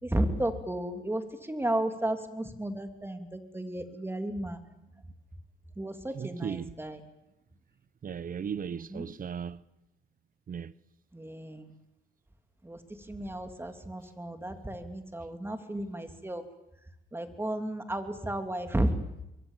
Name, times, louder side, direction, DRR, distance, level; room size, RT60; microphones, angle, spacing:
voice 1, 0.0-4.6 5.7-7.0 8.7-9.1 11.1-11.7 12.6-16.4 17.1-18.9, right 1 dB, 10° right, 3.0 m, -33 dB
voice 2, 6.1-6.7 8.0-9.6 10.5-10.7, right 7 dB, 45° right, 0.9 m, -36 dB
27.0 x 23.0 x 7.5 m
cardioid pair, 90°, 20 cm